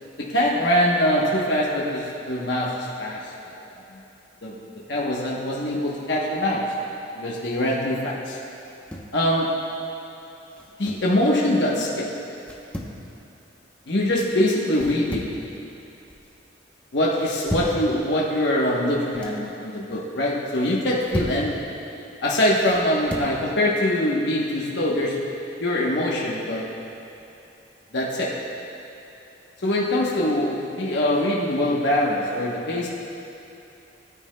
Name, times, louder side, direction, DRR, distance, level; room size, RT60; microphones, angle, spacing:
voice 1, 0.3-3.2 4.4-4.5 4.9-6.6 7.2-8.4 9.1-9.5 10.8-12.1 13.9-15.3 16.9-21.6 22.2-25.2 25.6-26.6 27.9-28.3 29.6-32.9, left 1 dB, 65° left, -4 dB, 1.1 m, -23 dB
sound 1, 8.6-9.2 10.5-11.1 12.4-13.0 14.7-15.4 15.8-16.3 17.1-17.8 18.9-19.4 20.7-21.5 22.6-23.3, equal, 5° left, 0.8 m, -34 dB
18.5 x 9.4 x 2.3 m, 2.8 s
head